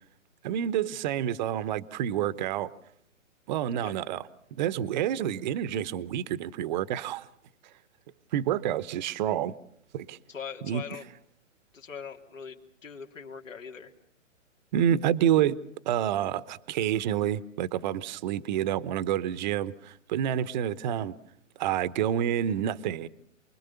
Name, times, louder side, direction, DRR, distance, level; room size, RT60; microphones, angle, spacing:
voice 1, 0.4-2.7 3.5-4.2 4.5-7.3 8.3-9.5 9.9-10.2 10.6-10.8 14.7-15.6 15.9-21.1 21.6-23.1, right 10 dB, 35° right, 0.9 m, -28 dB
voice 2, 10.3-11.1 11.7-13.9, left 6 dB, 80° left, 3.0 m, -41 dB
28.5 x 21.5 x 7.0 m
hypercardioid pair, 135°, 38 cm